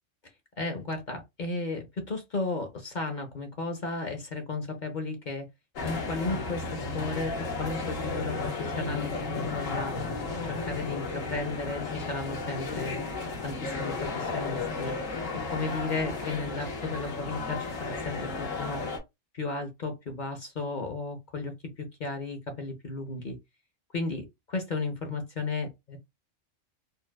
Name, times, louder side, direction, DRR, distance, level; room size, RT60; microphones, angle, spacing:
voice 1, 0.6-5.5 5.8-9.9 10.4-13.0 13.4-15.0 15.3-18.8 19.3-23.4 23.9-26.0, left 3 dB, 45° left, 0.7 m, -34 dB
sound 1, 5.8-19.0, left 3 dB, 85° left, 1.4 m, -34 dB
4.4 x 2.1 x 2.2 m
omnidirectional pair, 1.3 m